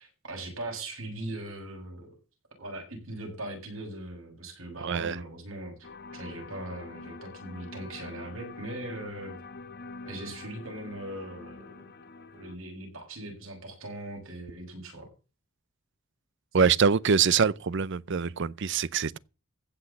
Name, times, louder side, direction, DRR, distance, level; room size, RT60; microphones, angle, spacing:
voice 1, 0.0-2.1 2.6-9.4 10.1-11.7 12.3-15.1, right 1 dB, 85° right, 7.1 m, -40 dB
voice 2, 4.8-5.2 16.5-19.2, right 6 dB, 60° right, 0.6 m, -24 dB
sound 1, 5.8-12.6, left 3 dB, 50° left, 1.1 m, -45 dB
15.5 x 6.2 x 7.2 m
head